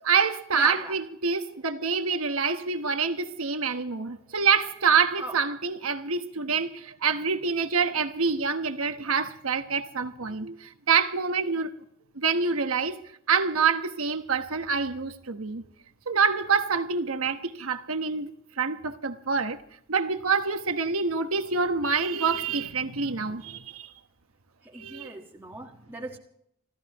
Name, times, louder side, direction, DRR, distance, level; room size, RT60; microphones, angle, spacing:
voice 1, 0.0-11.7 12.1-13.0 13.3-15.6 16.1-18.3 18.6-19.6 19.9-23.9 24.7-25.1, right 5 dB, 90° right, 1.2 m, -26 dB
voice 2, 0.5-0.9 5.2-5.3 24.6-26.2, right 2 dB, 10° right, 1.5 m, -38 dB
29.0 x 14.0 x 3.0 m
head